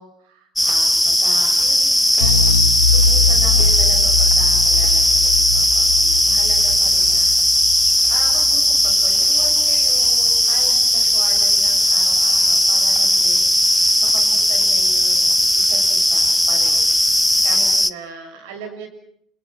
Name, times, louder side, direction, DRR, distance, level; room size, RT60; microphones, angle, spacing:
voice 1, 0.0-1.8 2.1-2.4 2.9-7.3 8.1-13.4 14.0-18.9, right 5 dB, 70° right, 5 dB, 6.8 m, -38 dB
sound 1, 0.6-17.9, equal, 5° left, 1.1 m, -16 dB
sound 2, 2.2-10.9 11.2-11.4 11.8-11.9, left 4 dB, 85° left, 1.6 m, -22 dB
29.0 x 28.0 x 6.1 m, 0.66 s
figure-of-eight pair, 60°, 0 cm